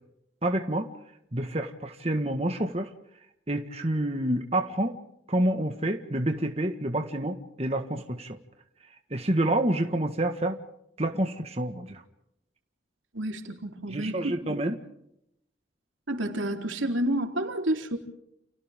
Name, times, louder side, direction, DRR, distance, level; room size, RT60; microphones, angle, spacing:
voice 1, 0.4-0.9 1.3-2.9 3.5-4.9 5.3-8.4 9.1-10.6 11.0-12.0 13.9-14.7, right 1 dB, 30° right, 5 dB, 1.7 m, -28 dB
voice 2, 13.1-14.6 16.1-18.0, right 1 dB, 85° right, 3 dB, 3.9 m, -30 dB
30.0 x 30.0 x 3.7 m, 0.78 s
head